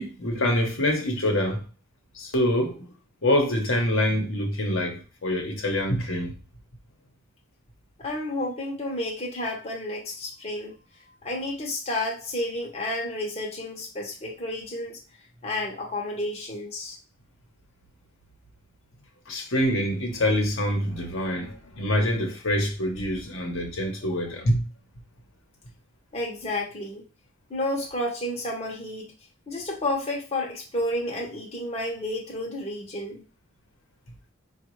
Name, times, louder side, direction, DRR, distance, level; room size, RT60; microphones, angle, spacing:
voice 1, 0.0-1.6 2.1-2.9 3.2-6.3 19.3-24.6, left 1 dB, 65° left, 1.0 m, -25 dB
voice 2, 8.0-10.7 11.2-15.0 15.4-17.0 26.1-27.0 27.5-29.1 29.5-33.2, left 1 dB, 30° left, 0.9 m, -31 dB
4.9 x 2.3 x 3.1 m
head